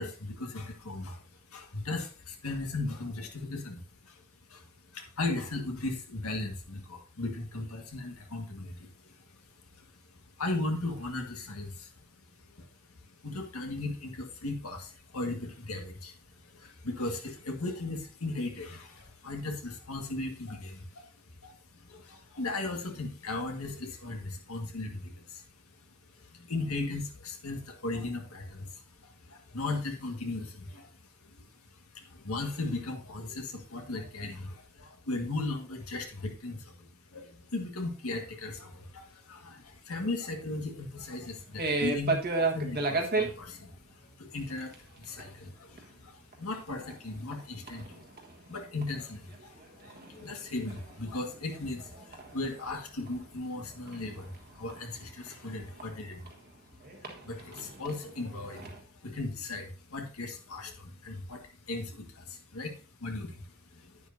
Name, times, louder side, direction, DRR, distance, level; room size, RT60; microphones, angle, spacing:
voice 1, 0.0-4.2 4.5-4.7 4.9-9.2 9.7-9.9 10.1-12.0 12.4-12.7 13.2-25.9 26.2-48.0 48.5-56.3 57.0-64.0, left 2 dB, 75° left, 3 dB, 1.7 m, -37 dB
sound 1, 41.6-43.3 44.4-44.8 45.0-45.3 45.8-45.9 46.3-46.4 46.7-47.4 47.7-49.0 49.3-52.6 53.0-56.3 56.8-58.8, right 3 dB, 45° right, 1.4 m, -34 dB
10.5 x 9.4 x 2.7 m, 0.37 s
head